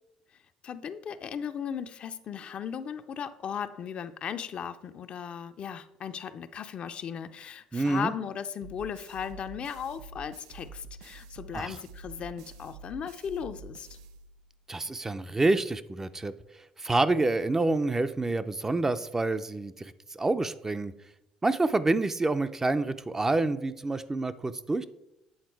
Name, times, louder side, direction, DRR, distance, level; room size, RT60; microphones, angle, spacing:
voice 1, 0.6-14.0, left 7 dB, 55° left, 9 dB, 0.5 m, -37 dB
voice 2, 7.7-8.1 11.5-11.8 14.7-16.3 16.8-20.9 21.4-24.8, right 2 dB, 20° right, 11 dB, 0.4 m, -27 dB
sound 1, 8.6-14.7, right 3 dB, 90° right, 0.4 m, -47 dB
8.7 x 3.7 x 4.6 m, 0.85 s
supercardioid pair, 70°, 2 cm